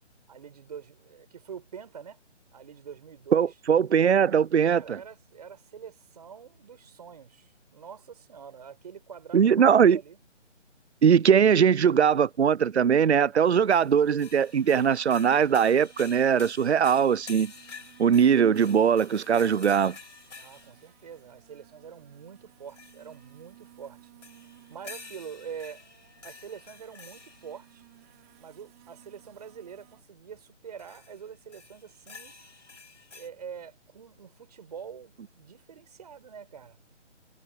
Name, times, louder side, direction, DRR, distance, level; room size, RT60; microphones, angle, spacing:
voice 1, 0.3-2.2 2.5-3.5 4.7-10.2 20.3-24.1 24.7-25.8 26.2-27.9 28.4-32.4 33.1-36.8, right 7 dB, 35° right, 6.7 m, -45 dB
voice 2, 3.3-5.0 9.3-10.0 11.0-17.5 18.0-20.0, right 7 dB, 65° right, 0.7 m, -21 dB
sound 1, 13.4-30.0, right 21 dB, 15° right, 3.5 m, -58 dB
sound 2, 13.7-20.9 22.7-23.3 24.2-27.7 30.8-31.2 31.5-33.3, left 4 dB, 75° left, 4.8 m, -49 dB
hypercardioid pair, 170°, 36 cm